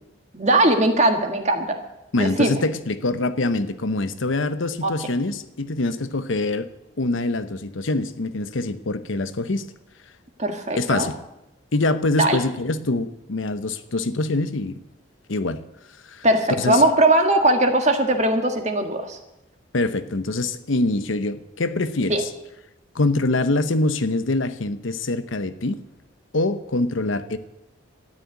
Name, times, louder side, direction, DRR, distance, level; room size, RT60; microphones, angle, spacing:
voice 1, 0.3-1.8 2.2-2.6 4.8-4.9 10.4-11.1 12.2-12.4 16.2-19.2 22.1-22.2, right 1 dB, 35° right, 5 dB, 1.7 m, -20 dB
voice 2, 2.1-6.7 7.0-9.7 10.8-11.2 11.7-14.8 15.3-15.6 16.1-16.2 16.6-16.8 19.7-22.2 22.9-25.7 26.3-27.4, left 2 dB, 75° left, 11 dB, 0.9 m, -24 dB
13.0 x 9.9 x 9.5 m, 0.91 s
head